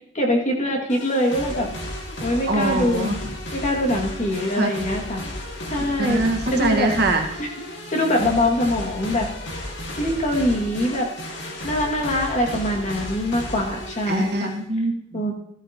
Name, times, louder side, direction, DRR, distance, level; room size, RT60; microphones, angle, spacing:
voice 1, 0.1-1.7 2.2-3.1 3.5-5.2 5.7-6.2 6.5-6.9 7.4-7.5 7.9-9.3 10.0-11.1 11.6-14.5 15.1-15.3, left 1 dB, 40° left, 0 dB, 2.3 m, -23 dB
sound 1, 0.9-14.6, left 1 dB, 65° left, 2.2 m, -34 dB
voice 2, 2.3-3.2 4.6-4.7 6.0-7.2 14.1-15.2, right 2 dB, 55° right, 3 dB, 1.7 m, -23 dB
14.5 x 13.5 x 3.0 m, 0.74 s
head